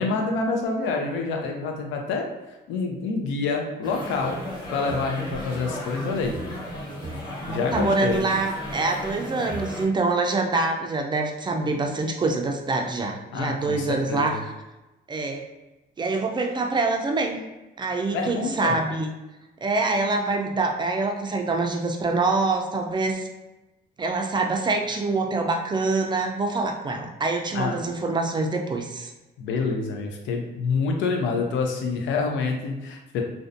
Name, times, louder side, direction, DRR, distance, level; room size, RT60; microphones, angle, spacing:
voice 1, 0.0-2.3 2.7-4.4 4.7-6.4 7.5-8.2 13.3-14.4 18.1-18.8 27.5-27.8 29.4-33.2, left 4 dB, 85° left, 2 dB, 0.5 m, -27 dB
sound 1, 3.8-9.9, equal, 25° left, 0.9 m, -34 dB
voice 2, 7.4-14.4 15.1-15.4 16.0-17.4 17.8-19.1 19.6-23.3 24.0-29.1, right 3 dB, 25° right, 3 dB, 0.4 m, -25 dB
2.5 x 2.1 x 2.5 m, 1.1 s
cardioid pair, 80°, 19 cm